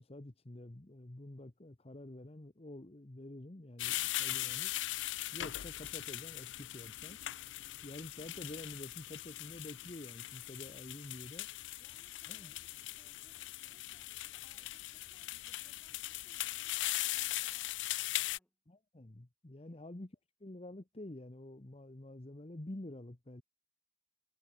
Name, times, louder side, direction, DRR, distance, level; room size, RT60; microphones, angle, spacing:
voice 1, 0.0-4.7 5.3-7.2 7.8-11.5 12.3-12.5 18.7-20.1 20.4-23.4, left 1 dB, 30° left, 1.0 m, -48 dB
sound 1, 3.8-18.4, left 16 dB, 75° left, 0.4 m, -40 dB
voice 2, 11.8-17.8 18.0-18.6 19.6-19.8, equal, 5° left, 3.8 m, -72 dB
head